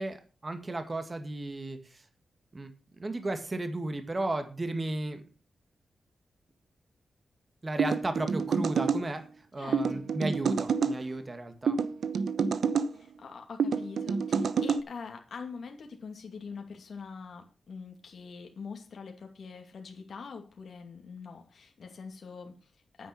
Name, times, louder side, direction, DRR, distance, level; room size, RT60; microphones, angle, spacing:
voice 1, 0.0-2.0 2.5-2.7 3.0-5.2 7.6-9.2 9.5-11.8, right 2 dB, 30° right, 8 dB, 1.9 m, -34 dB
sound 1, 7.8-9.0 9.7-11.0 11.7-12.9 13.6-14.8, right 5 dB, 80° right, 0.8 m, -28 dB
voice 2, 9.6-10.1 12.9-23.1, left 5 dB, 65° left, 3 dB, 2.4 m, -44 dB
9.6 x 9.2 x 6.1 m, 0.34 s
wide cardioid pair, 110°, 0 cm